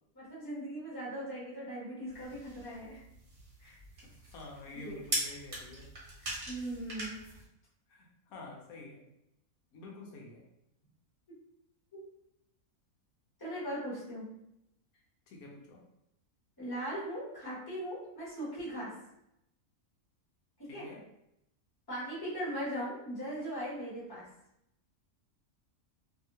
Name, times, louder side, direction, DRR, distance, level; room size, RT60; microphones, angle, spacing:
voice 1, 0.1-3.0 3.6-3.8 4.7-4.9 6.2-7.2 13.4-14.3 16.6-18.9 20.6-20.9 21.9-24.3, equal, 15° left, -9 dB, 1.2 m, -39 dB
sound 1, 2.1-7.5, right 1 dB, 40° right, 1.0 m, -41 dB
voice 2, 4.0-5.9 7.1-7.4 7.9-9.1 9.7-10.4 15.3-15.8 20.7-21.0, left 2 dB, 90° left, -1 dB, 1.2 m, -49 dB
2.7 x 2.6 x 2.7 m, 0.82 s
omnidirectional pair, 1.5 m